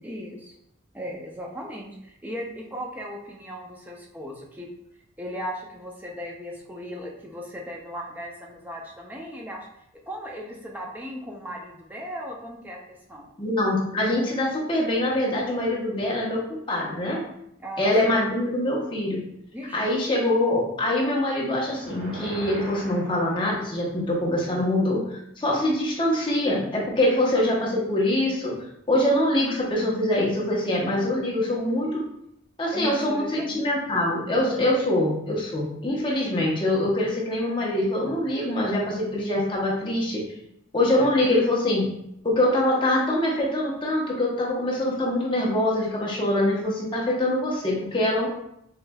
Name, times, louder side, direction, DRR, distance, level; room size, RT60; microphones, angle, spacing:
voice 1, 0.0-0.5 0.9-4.7 5.2-12.8 13.1-13.3 17.6-17.9 19.5-19.9 32.7-33.6 34.5-34.6, equal, 10° right, -1 dB, 0.5 m, -37 dB
voice 2, 13.4-17.2 17.8-19.2 19.7-28.5 28.9-32.0 32.6-40.2 40.7-41.9 42.2-48.3, left 1 dB, 25° left, -4 dB, 0.9 m, -24 dB
sound 1, 21.6-24.0, right 1 dB, 40° right, 0.9 m, -40 dB
4.7 x 3.1 x 2.3 m, 0.77 s
head